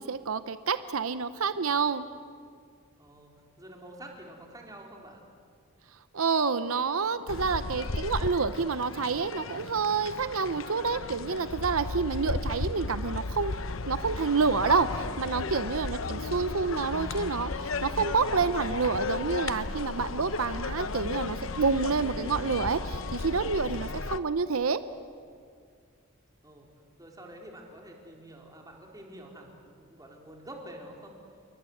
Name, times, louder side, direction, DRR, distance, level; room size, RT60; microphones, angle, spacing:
voice 1, 0.0-2.1 6.1-13.5 13.9-24.8, right 5 dB, 90° right, 12 dB, 0.8 m, -28 dB
voice 2, 3.0-3.3 3.6-5.2 26.4-26.7 27.0-31.1, right 1 dB, 20° right, 0 dB, 4.1 m, -47 dB
sound 1, 7.3-24.2, left 3 dB, 70° left, 0.9 m, -35 dB
28.5 x 23.0 x 8.0 m, 2.1 s
head